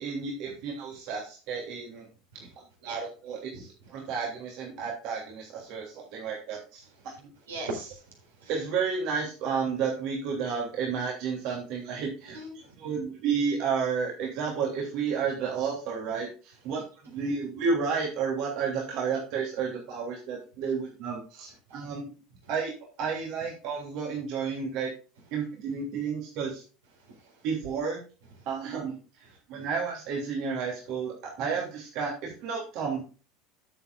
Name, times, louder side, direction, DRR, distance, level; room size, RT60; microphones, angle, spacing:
voice 1, 0.0-2.1 2.8-6.8 7.2-7.3 8.5-12.4 12.8-16.8 17.1-22.1 22.5-24.9 25.3-26.6 27.4-28.0 28.5-33.0, right 5 dB, 50° right, -1 dB, 3.0 m, -31 dB
voice 2, 7.5-8.0 8.4-8.6 12.3-12.9 16.7-16.8 21.7-21.8 27.0-27.3 28.4-28.5 29.6-29.7, right 2 dB, 70° right, 1 dB, 4.0 m, -40 dB
13.5 x 8.0 x 2.5 m, 0.35 s
figure-of-eight pair, 70°, 0 cm